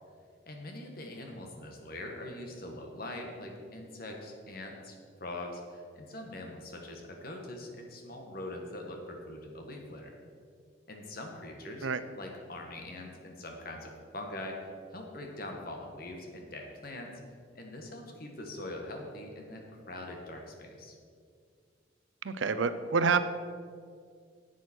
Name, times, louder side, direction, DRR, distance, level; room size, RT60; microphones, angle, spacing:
voice 1, 0.5-4.9 5.2-10.1 10.9-11.9 12.2-14.6 14.9-17.1 17.5-20.9, left 1 dB, 50° left, 2 dB, 1.5 m, -42 dB
voice 2, 22.2-23.2, right 5 dB, 90° right, 12 dB, 0.6 m, -27 dB
11.0 x 8.2 x 4.4 m, 2.2 s
head